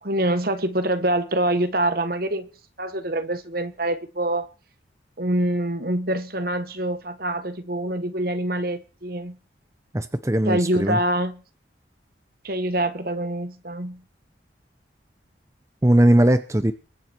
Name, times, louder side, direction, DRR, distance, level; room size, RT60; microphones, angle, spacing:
voice 1, 0.0-2.5 2.8-4.5 5.2-9.4 10.5-11.4 12.4-14.0, right 1 dB, 55° right, 1.6 m, -25 dB
voice 2, 9.9-11.0 15.8-16.7, right 1 dB, 15° right, 0.7 m, -19 dB
22.5 x 9.4 x 4.5 m
head